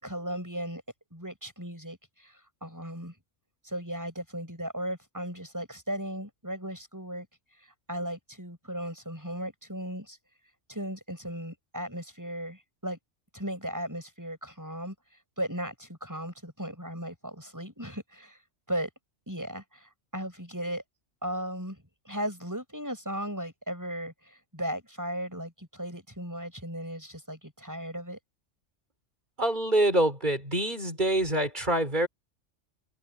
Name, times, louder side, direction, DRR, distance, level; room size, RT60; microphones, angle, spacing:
voice 1, 0.0-0.8 1.1-3.1 3.6-7.3 7.6-10.2 10.7-13.0 13.3-14.9 15.4-18.4 18.7-18.9 19.3-20.8 21.2-28.2, equal, 15° right, 6.7 m, -36 dB
voice 2, 29.4-32.1, right 1 dB, 35° right, 5.6 m, -25 dB
omnidirectional pair, 1.3 m